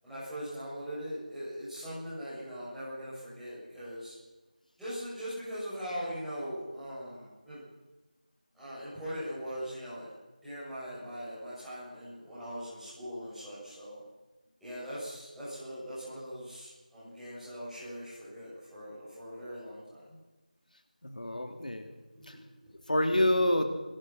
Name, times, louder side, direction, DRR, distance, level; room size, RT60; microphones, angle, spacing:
voice 1, 0.0-4.1 4.8-7.6 8.5-10.1 10.4-14.0 14.6-20.0 22.2-22.7, equal, ahead, -15 dB, 7.4 m, -41 dB
voice 2, 21.0-21.9 22.3-22.4 22.9-23.7, left 1 dB, 65° left, 5 dB, 3.4 m, -27 dB
26.0 x 20.5 x 6.0 m, 1.1 s
figure-of-eight pair, 175°, 5 cm